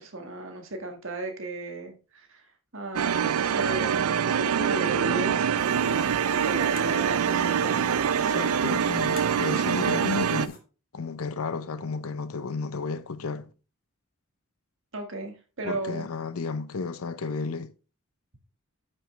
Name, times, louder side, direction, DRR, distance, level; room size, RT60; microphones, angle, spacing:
voice 1, 0.0-3.9 4.2-8.4 14.9-16.1, right 2 dB, 60° right, 1.6 m, -36 dB
sound 1, 3.0-10.5, right 7 dB, 75° right, 0.4 m, -25 dB
sound 2, 5.6-10.6, left 3 dB, 40° left, 1.4 m, -48 dB
voice 2, 8.1-10.6 10.9-13.5 15.6-17.7, left 4 dB, 70° left, 0.6 m, -33 dB
10.0 x 5.5 x 3.3 m
head